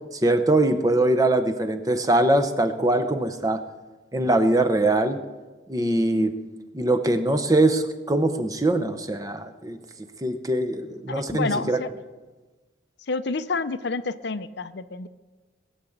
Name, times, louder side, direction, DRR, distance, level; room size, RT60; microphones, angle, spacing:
voice 1, 0.1-3.6 4.1-5.2 5.7-6.3 6.7-9.8 10.2-11.8, right 2 dB, 20° right, 8 dB, 0.8 m, -22 dB
voice 2, 11.1-11.9 13.1-15.1, left 3 dB, 60° left, 12 dB, 0.6 m, -29 dB
20.0 x 7.2 x 8.0 m, 1.3 s
head